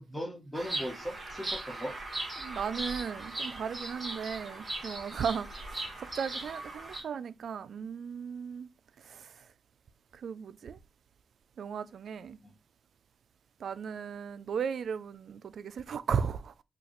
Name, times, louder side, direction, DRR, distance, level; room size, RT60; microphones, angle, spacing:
voice 1, 0.0-2.0 12.4-12.5, equal, 10° left, 1.3 m, -38 dB
Bird vocalization bird call bird song, 0.5-7.0, right 2 dB, 35° right, 1.8 m, -39 dB
voice 2, 2.4-8.7 9.0-9.5 10.1-10.8 11.6-12.4 13.6-16.5, right 7 dB, 70° right, 0.3 m, -36 dB
4.9 x 2.4 x 3.0 m
cardioid pair, 105°, 0 cm